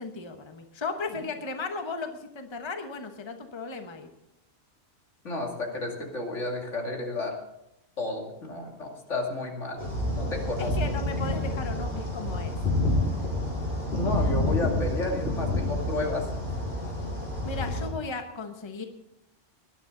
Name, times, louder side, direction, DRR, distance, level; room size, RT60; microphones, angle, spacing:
voice 1, 0.0-4.1 10.6-12.5 17.4-18.8, left 3 dB, 25° left, 5 dB, 1.1 m, -36 dB
voice 2, 5.2-7.3 8.0-10.9 13.9-16.3, left 2 dB, 75° left, 0 dB, 2.9 m, -32 dB
sound 1, 9.8-17.9, left 1 dB, 55° left, 4.9 m, -29 dB
20.0 x 11.0 x 3.9 m, 0.83 s
omnidirectional pair, 1.3 m